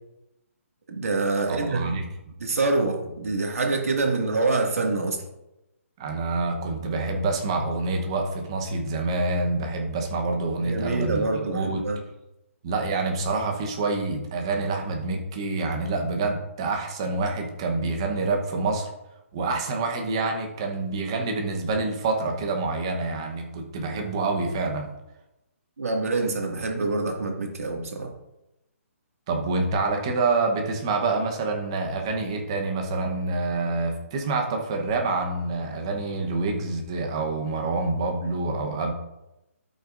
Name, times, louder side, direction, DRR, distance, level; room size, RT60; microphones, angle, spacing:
voice 1, 0.9-1.8 2.4-5.2 10.6-12.0 25.8-28.1, right 3 dB, 75° right, 1 dB, 2.0 m, -26 dB
voice 2, 1.5-2.0 6.0-11.2 11.5-11.8 12.6-18.9 19.3-24.9 29.3-38.9, right 3 dB, 20° right, 2 dB, 0.9 m, -27 dB
13.0 x 5.8 x 2.6 m, 0.92 s
hypercardioid pair, 180°, 8 cm